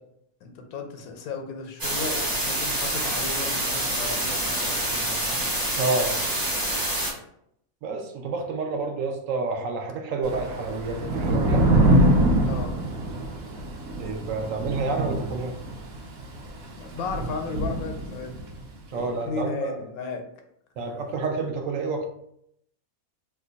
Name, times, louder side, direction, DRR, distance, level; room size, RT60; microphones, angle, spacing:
voice 1, 0.4-5.4 12.4-12.9 16.8-18.3 18.9-20.2, left 4 dB, 85° left, 4 dB, 1.1 m, -35 dB
sound 1, 1.8-7.1, right 1 dB, 20° right, 0.6 m, -27 dB
voice 2, 5.8-6.1 7.8-11.6 14.0-15.6 18.9-19.8 20.8-22.1, right 3 dB, 70° right, 3 dB, 0.9 m, -29 dB
Thunder / Rain, 10.2-18.6, right 1 dB, 90° right, 1.2 m, -24 dB
2.9 x 2.2 x 3.8 m, 0.74 s
omnidirectional pair, 1.5 m